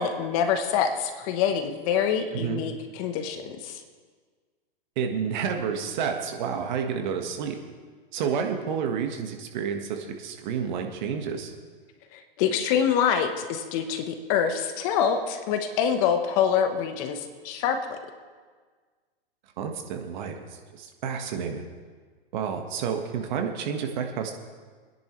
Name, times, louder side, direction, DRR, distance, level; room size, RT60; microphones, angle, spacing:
voice 1, 0.0-3.8 12.1-18.0, left 7 dB, 35° left, 7 dB, 1.1 m, -26 dB
voice 2, 2.3-2.6 4.9-7.6 8.1-11.5 19.6-21.6 22.3-24.3, right 7 dB, 50° right, 4 dB, 1.6 m, -30 dB
25.5 x 10.5 x 3.2 m, 1.5 s
hypercardioid pair, 135°, 30 cm